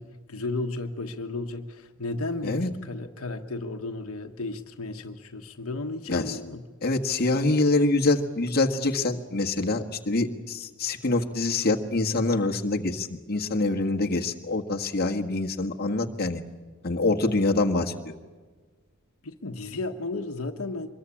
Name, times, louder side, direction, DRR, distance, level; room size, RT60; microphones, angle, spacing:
voice 1, 0.0-6.6 19.2-20.9, left 2 dB, 85° left, 5 dB, 1.3 m, -34 dB
voice 2, 6.8-16.4 16.8-18.1, left 2 dB, 50° left, 2 dB, 1.7 m, -25 dB
24.5 x 22.0 x 8.6 m, 1.4 s
head